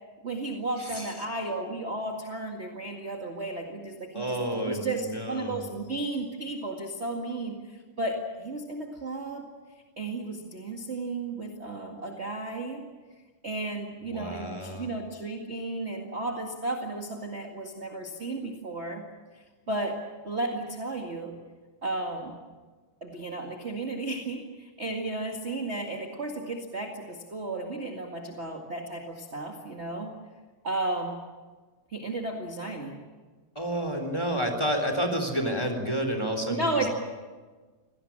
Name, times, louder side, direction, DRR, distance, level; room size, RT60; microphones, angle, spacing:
voice 1, 0.2-9.5 10.0-12.9 13.4-19.1 19.3-21.3 21.8-22.4 23.0-30.1 30.6-31.2 31.9-33.0 36.5-36.9, right 2 dB, 30° right, 2 dB, 1.3 m, -34 dB
voice 2, 4.1-5.6 14.1-14.9 33.5-36.8, equal, 10° left, 5 dB, 3.1 m, -30 dB
25.5 x 18.0 x 8.8 m, 1.4 s
omnidirectional pair, 4.3 m